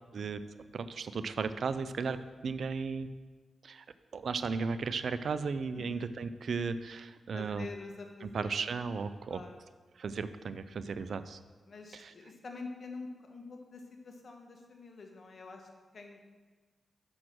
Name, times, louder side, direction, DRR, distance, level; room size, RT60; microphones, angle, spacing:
voice 1, 0.7-2.2 2.4-3.1 3.6-3.8 4.1-7.7 8.2-9.4 10.0-11.4 11.9-12.1, right 5 dB, 70° right, 13 dB, 0.4 m, -35 dB
voice 2, 7.3-8.6 8.9-9.0 9.3-9.5 11.7-16.2, left 3 dB, 60° left, 3 dB, 1.3 m, -47 dB
6.2 x 6.1 x 6.0 m, 1.3 s
supercardioid pair, 45°, 0 cm